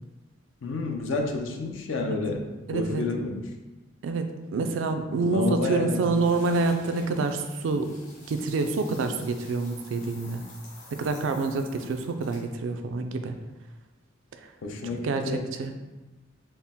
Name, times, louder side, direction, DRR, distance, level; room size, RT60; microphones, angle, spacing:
voice 1, 0.6-3.4 5.2-6.2 14.6-15.5, left 3 dB, 70° left, 2 dB, 0.5 m, -30 dB
voice 2, 2.7-3.0 4.0-7.9 8.3-10.4 11.0-13.4 14.8-15.7, right 3 dB, 70° right, 7 dB, 0.3 m, -27 dB
sound 1, 6.0-12.6, left 2 dB, 40° left, 1.2 m, -49 dB
4.2 x 2.0 x 3.5 m, 1.1 s
head